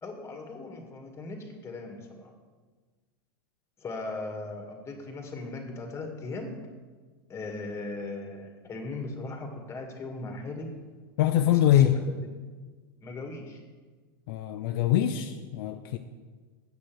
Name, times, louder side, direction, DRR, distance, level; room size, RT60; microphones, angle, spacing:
voice 1, 0.0-2.3 3.8-6.6 7.3-10.8 11.5-12.2 13.0-13.6, left 2 dB, 20° left, 3 dB, 1.9 m, -38 dB
voice 2, 11.2-12.0 14.3-16.0, left 11 dB, 65° left, 6 dB, 0.6 m, -23 dB
8.2 x 6.3 x 7.7 m, 1.4 s
hypercardioid pair, 110°, 13 cm